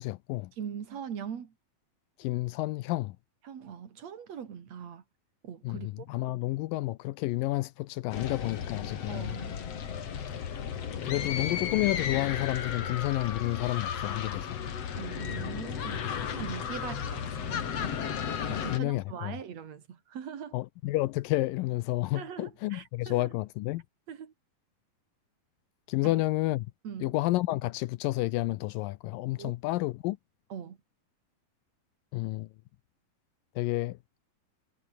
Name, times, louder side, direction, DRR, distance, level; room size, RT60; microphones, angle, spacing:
voice 1, 0.0-0.5 2.2-3.2 5.6-9.4 11.0-14.6 18.5-19.4 20.5-23.8 25.9-26.7 27.0-30.2 32.1-32.5 33.6-34.0, left 18 dB, 85° left, 2.3 m, -30 dB
voice 2, 0.6-1.5 3.4-5.0 5.4-6.1 9.1-9.5 15.0-16.0 16.3-17.9 18.5-20.5 22.1-23.3 24.1-24.3 26.0-26.1 26.8-27.1 29.4-29.5 30.5-30.8, right 8 dB, 50° right, 3.2 m, -41 dB
sound 1, 8.1-18.8, left 8 dB, 50° left, 2.9 m, -34 dB
omnidirectional pair, 4.1 m